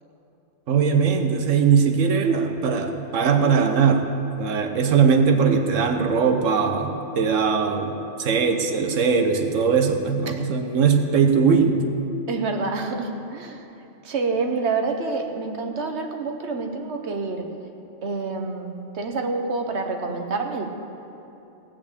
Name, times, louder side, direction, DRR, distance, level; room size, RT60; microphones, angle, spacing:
voice 1, 0.7-4.0 4.4-11.8, right 6 dB, 80° right, 5 dB, 1.3 m, -20 dB
voice 2, 12.3-13.7 14.0-17.5 18.0-20.6, right 4 dB, 60° right, 4 dB, 1.3 m, -27 dB
17.0 x 5.9 x 8.5 m, 2.8 s
omnidirectional pair, 1.3 m